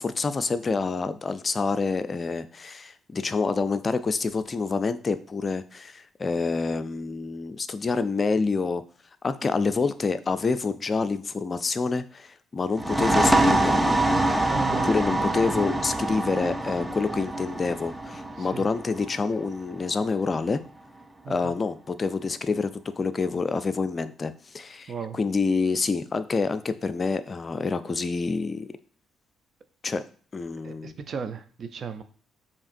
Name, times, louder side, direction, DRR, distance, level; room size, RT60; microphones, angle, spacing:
voice 1, 0.0-8.8 9.2-14.0 14.8-20.6 21.3-22.7 23.0-28.7 29.8-30.0 30.3-30.9, left 4 dB, 40° left, 12 dB, 0.4 m, -27 dB
sound 1, 12.7-20.1, right 1 dB, 10° right, 0.6 m, -25 dB
voice 2, 14.5-14.9 15.2-15.3 18.4-18.6 21.2-21.5 24.9-25.2 30.6-32.0, right 6 dB, 55° right, 9 dB, 0.6 m, -35 dB
7.0 x 2.9 x 2.6 m, 0.43 s
hypercardioid pair, 50°, 0 cm